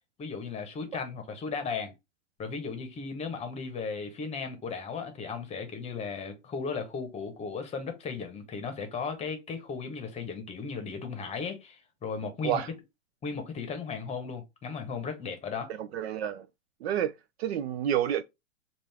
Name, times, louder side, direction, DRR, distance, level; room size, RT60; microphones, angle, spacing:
voice 1, 0.2-1.9 2.4-12.6 13.2-15.7, left 5 dB, 15° left, 0.9 m, -36 dB
voice 2, 15.9-16.5 16.8-17.1 17.4-18.2, right 10 dB, 50° right, 0.4 m, -28 dB
5.3 x 2.5 x 3.4 m
hypercardioid pair, 130°, 41 cm